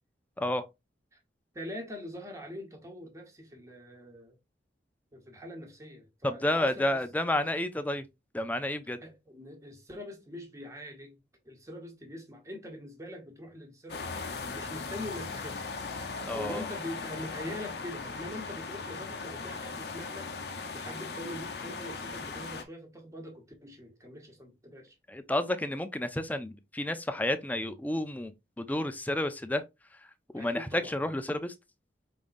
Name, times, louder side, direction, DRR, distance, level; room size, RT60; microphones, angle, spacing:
voice 1, 1.5-4.4 5.1-7.0 9.0-11.2 11.4-15.7 16.3-25.0 30.3-31.0, left 1 dB, 15° right, 1.1 m, -43 dB
voice 2, 6.2-8.0 8.3-9.0 16.2-16.7 25.1-29.6 30.3-31.5, left 1 dB, 10° left, 0.4 m, -31 dB
sound 1, 13.9-22.6, left 4 dB, 65° left, 0.7 m, -38 dB
5.1 x 3.7 x 2.5 m
head